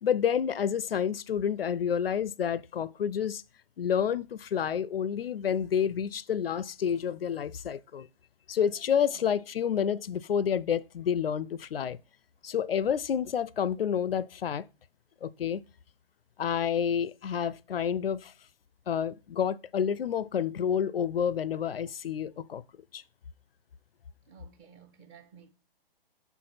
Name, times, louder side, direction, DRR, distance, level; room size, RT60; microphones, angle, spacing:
voice 1, 0.0-3.4 3.8-8.1 8.5-12.0 12.4-14.7 15.2-15.6 16.4-18.3 18.9-22.6 22.9-23.0, left 8 dB, 75° left, 0.4 m, -29 dB
voice 2, 24.3-25.5, right 7 dB, 20° right, 0.7 m, -54 dB
7.0 x 4.5 x 4.0 m
figure-of-eight pair, 125°, 29 cm